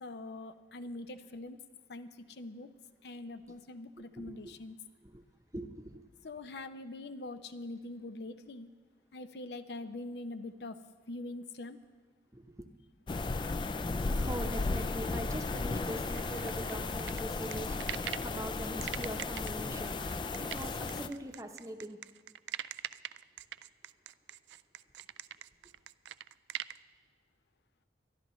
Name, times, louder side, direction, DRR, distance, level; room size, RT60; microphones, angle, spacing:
voice 1, 0.0-1.6 1.9-2.7 3.0-4.8 6.2-8.7 9.1-10.8 11.1-11.8, left 2 dB, 70° left, 11 dB, 0.6 m, -43 dB
voice 2, 4.0-4.6 5.0-5.2 5.5-6.0 12.3-12.6 14.1-22.0, right 1 dB, 20° right, 5 dB, 0.8 m, -43 dB
sound 1, 13.1-21.1, left 3 dB, 25° left, 0.3 m, -35 dB
sound 2, 16.1-18.3 18.8-26.8, right 11 dB, 85° right, 0.3 m, -42 dB
24.0 x 12.0 x 3.1 m, 1.4 s
head